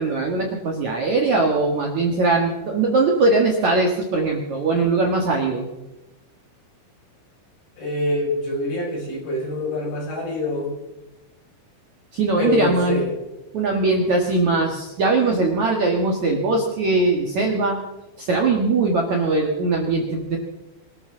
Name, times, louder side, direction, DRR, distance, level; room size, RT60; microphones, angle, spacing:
voice 1, 0.0-5.7 12.1-13.0 13.5-17.8 18.2-20.4, right 3 dB, 55° right, 0 dB, 2.3 m, -21 dB
voice 2, 7.8-10.7 12.4-13.1, left 2 dB, 55° left, -3 dB, 8.2 m, -25 dB
24.5 x 14.5 x 3.9 m, 0.97 s
omnidirectional pair, 5.4 m